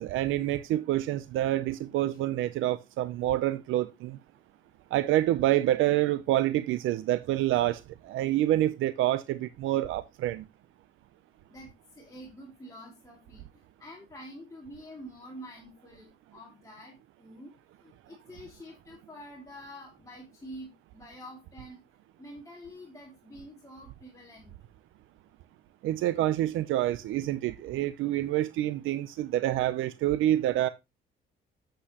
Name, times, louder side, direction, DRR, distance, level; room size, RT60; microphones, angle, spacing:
voice 1, 0.0-4.2 4.9-10.4 25.8-30.7, right 14 dB, 85° right, 0.6 m, -27 dB
voice 2, 11.5-17.5 17.8-21.8 22.2-24.5, equal, 15° left, 2.5 m, -47 dB
8.4 x 7.8 x 2.9 m
cardioid pair, 90°, 20 cm